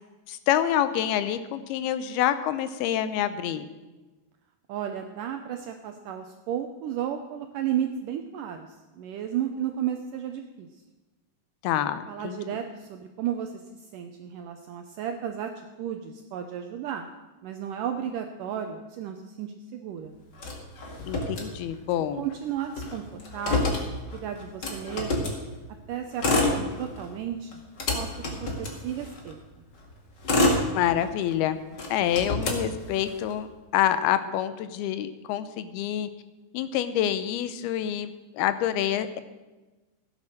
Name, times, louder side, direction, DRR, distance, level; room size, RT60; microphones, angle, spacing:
voice 1, 0.3-3.7 11.6-12.4 21.1-22.2 30.7-31.6 31.9-33.5 33.7-36.1 36.5-39.2, left 11 dB, 80° left, 12 dB, 2.6 m, -27 dB
voice 2, 4.7-8.7 8.9-10.7 12.1-13.5 13.9-15.5 15.8-17.1 17.4-20.2 22.2-23.8 24.1-25.3 25.9-27.5 27.9-29.7, right 9 dB, 80° right, 6 dB, 1.9 m, -33 dB
Motor vehicle (road), 20.4-22.0 22.3-22.4 22.6-25.4 26.0-27.1 27.5-29.3 29.9-31.3 31.7-33.3, left 2 dB, 40° left, 1.7 m, -28 dB
15.5 x 9.8 x 6.5 m, 1.2 s
omnidirectional pair, 4.6 m